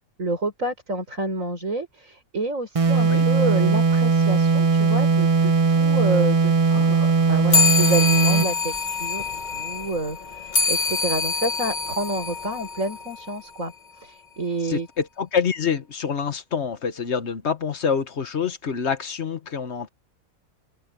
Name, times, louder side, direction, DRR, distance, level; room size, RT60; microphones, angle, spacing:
voice 1, 0.2-9.2 9.5-14.9, right 2 dB, 60° right, 5.8 m, -29 dB
sound 1, 2.7-8.6, right 4 dB, 30° right, 0.7 m, -19 dB
voice 2, 6.7-7.5 14.6-19.9, left 6 dB, 50° left, 1.3 m, -27 dB
sound 2, 7.5-13.3, left 4 dB, 30° left, 1.4 m, -25 dB
open air
omnidirectional pair, 1.5 m